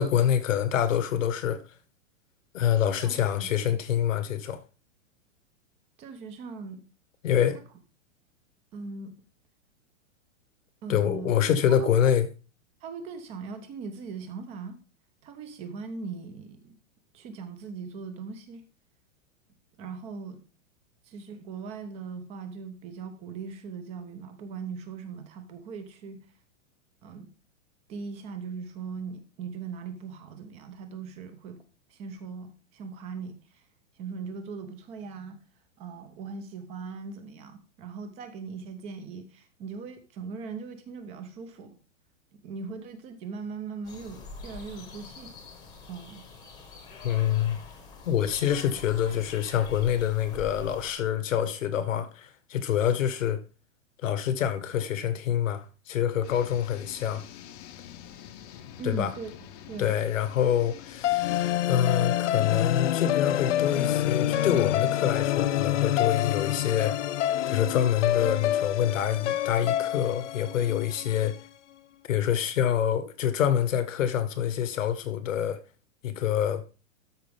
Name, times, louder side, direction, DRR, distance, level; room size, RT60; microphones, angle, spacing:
voice 1, 0.0-1.6 2.5-4.6 7.2-7.6 10.9-12.3 47.0-47.6 48.1-53.4 54.0-57.2 58.8-59.1 59.8-67.0 67.5-71.4 72.1-75.6 76.0-76.6, left 9 dB, 85° left, 1.5 m, -26 dB
voice 2, 3.0-3.5 6.0-6.8 8.7-9.2 10.8-11.3 11.7-12.1 12.8-14.8 15.2-16.8 17.1-18.6 19.8-20.4 21.1-26.2 27.0-27.3 27.9-31.6 31.9-33.6 34.0-35.4 35.8-41.8 42.4-45.3 45.9-46.3 48.7-48.8 58.8-59.3 59.7-59.9, right 5 dB, 15° right, 0.6 m, -39 dB
sound 1, 43.8-50.9, left 3 dB, 10° left, 1.0 m, -45 dB
sound 2, 56.2-61.5, left 9 dB, 30° left, 0.8 m, -46 dB
sound 3, 61.0-71.3, left 12 dB, 65° left, 0.8 m, -27 dB
12.5 x 5.1 x 3.5 m
supercardioid pair, 165°, 38 cm